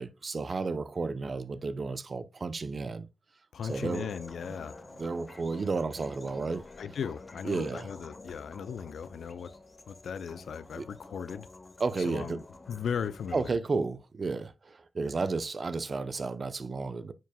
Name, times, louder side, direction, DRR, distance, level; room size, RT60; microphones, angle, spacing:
voice 1, 0.0-3.1 3.6-4.1 5.0-6.6 7.4-7.9 10.7-10.9 11.8-12.4 13.3-17.1, right 4 dB, 50° right, 0.7 m, -32 dB
voice 2, 3.5-4.8 6.8-9.5 9.9-11.5 12.1-13.6, left 7 dB, 80° left, 0.4 m, -37 dB
sound 1, 3.6-13.5, left 2 dB, 40° left, 1.1 m, -49 dB
9.3 x 4.7 x 2.2 m
cardioid pair, 50°, 0 cm